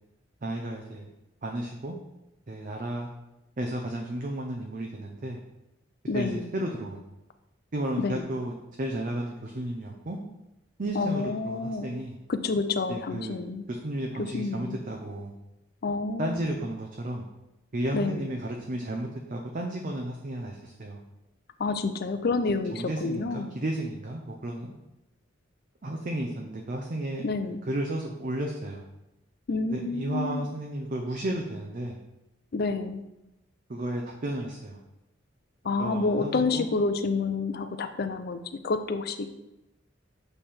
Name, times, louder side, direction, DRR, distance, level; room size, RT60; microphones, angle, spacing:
voice 1, 0.4-1.1 1.4-2.0 2.5-3.1 3.6-5.4 6.1-7.1 7.7-10.2 10.8-12.2 12.9-13.4 13.7-15.3 16.2-17.2 17.7-21.0 22.7-24.7 25.8-27.3 27.7-28.9 29.7-32.0 33.7-34.8 35.8-36.7, right 1 dB, 45° right, 1 dB, 0.6 m, -33 dB
voice 2, 6.1-6.5 8.0-8.2 10.9-11.9 12.3-13.7 14.2-14.8 15.8-16.4 17.9-18.3 21.6-23.5 27.2-27.6 29.5-30.5 32.5-33.0 35.6-39.3, left 3 dB, 50° left, 9 dB, 0.4 m, -29 dB
7.4 x 3.3 x 4.3 m, 0.93 s
head